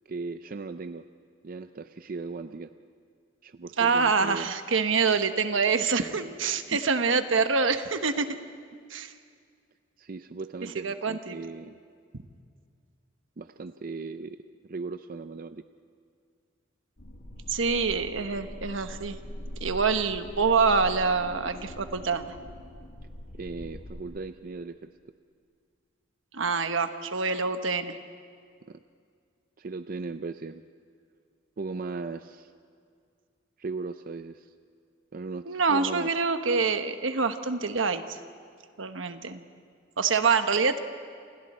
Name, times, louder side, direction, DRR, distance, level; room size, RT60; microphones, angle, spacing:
voice 1, 0.1-1.0 1.4-2.7 3.4-4.5 6.7-6.8 10.0-11.8 13.4-14.4 14.6-15.6 23.4-24.9 28.7-28.8 29.6-30.6 31.6-32.5 33.6-34.5 35.1-36.1, right 3 dB, 45° right, 10 dB, 0.5 m, -37 dB
voice 2, 3.8-8.4 8.9-9.1 10.8-11.4 17.5-19.2 19.6-22.2 26.3-28.0 35.5-38.2 38.8-39.4 40.0-40.8, right 4 dB, 80° right, 8 dB, 1.2 m, -26 dB
sound 1, 17.0-24.0, equal, 65° left, 2.4 m, -42 dB
28.5 x 27.5 x 4.3 m, 2.2 s
head